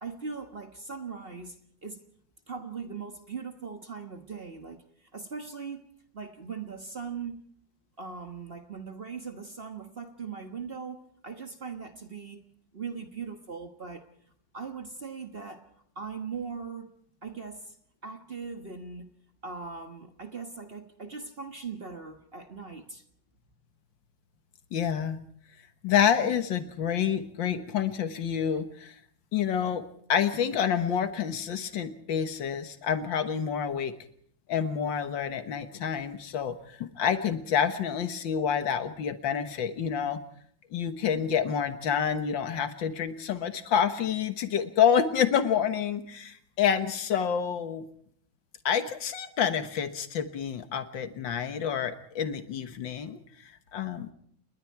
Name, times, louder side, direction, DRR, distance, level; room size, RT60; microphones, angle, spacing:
voice 1, 0.0-2.0 2.5-5.8 6.1-7.4 8.0-12.4 12.7-14.0 14.5-15.7 15.9-17.8 18.0-19.1 19.4-23.0, right 5 dB, 35° right, 1.3 m, -40 dB
voice 2, 24.7-25.2 25.8-29.0 29.3-33.9 34.5-40.2 40.7-47.8 48.7-54.1, left 8 dB, 85° left, 2.0 m, -28 dB
29.0 x 21.0 x 4.7 m
omnidirectional pair, 2.0 m